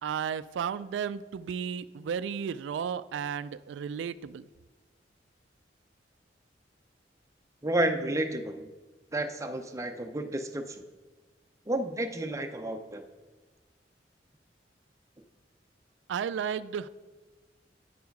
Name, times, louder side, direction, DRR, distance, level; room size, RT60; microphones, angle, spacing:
voice 1, 0.0-4.4 16.1-16.9, right 7 dB, 85° right, 16 dB, 0.3 m, -33 dB
voice 2, 7.6-8.7 9.1-10.8 11.7-13.0, right 1 dB, 20° right, 6 dB, 0.5 m, -31 dB
9.2 x 4.8 x 5.2 m, 1.3 s
head